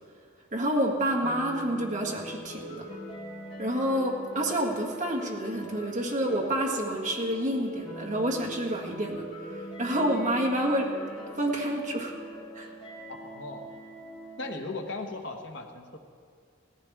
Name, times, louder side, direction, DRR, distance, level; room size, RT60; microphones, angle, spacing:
voice 1, 0.5-2.9 3.6-9.3 9.5-10.9 11.4-12.1 12.6-12.7, right 1 dB, 40° right, -1 dB, 1.7 m, -28 dB
sound 1, 1.2-14.5, equal, 30° left, 4.5 m, -42 dB
voice 2, 13.1-13.7 14.4-16.0, left 2 dB, 65° left, 2 dB, 1.3 m, -37 dB
17.5 x 15.0 x 3.7 m, 2.3 s
head